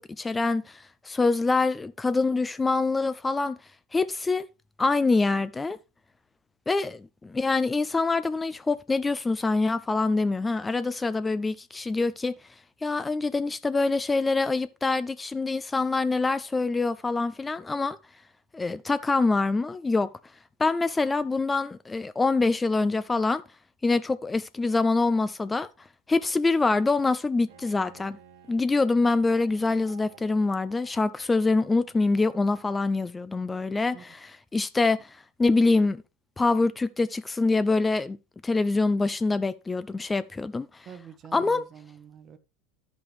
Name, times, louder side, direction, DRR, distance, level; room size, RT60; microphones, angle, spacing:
voice 1, 0.2-3.6 3.9-4.5 4.8-5.8 6.7-12.3 12.8-18.0 18.5-20.1 20.6-23.4 23.8-25.7 26.1-28.2 28.5-36.0 36.4-38.2 38.4-40.9 41.3-41.6, left 3 dB, 15° left, 0.5 m, -25 dB
Bowed string instrument, 27.5-32.3, right 7 dB, 80° right, 2.0 m, -55 dB
voice 2, 40.9-42.4, right 8 dB, 45° right, 1.0 m, -46 dB
12.5 x 5.3 x 3.3 m
hypercardioid pair, 85°, 0 cm